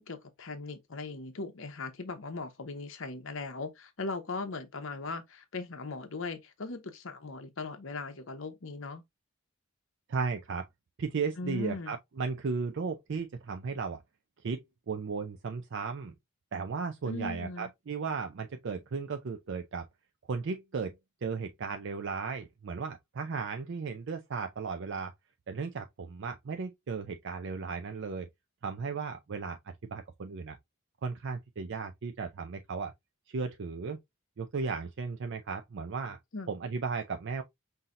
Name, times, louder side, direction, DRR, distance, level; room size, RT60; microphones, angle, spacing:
voice 1, 0.0-9.0 11.4-12.0 17.0-17.7 36.3-36.5, left 3 dB, 60° left, 0.9 m, -39 dB
voice 2, 10.1-10.7 11.0-14.0 14.4-14.6 14.9-16.1 16.5-19.8 20.3-20.9 21.2-25.1 25.5-28.3 28.6-30.6 31.0-32.9 33.3-34.0 34.4-36.2 36.5-37.4, right 5 dB, 55° right, 0.4 m, -35 dB
5.6 x 2.7 x 2.5 m
head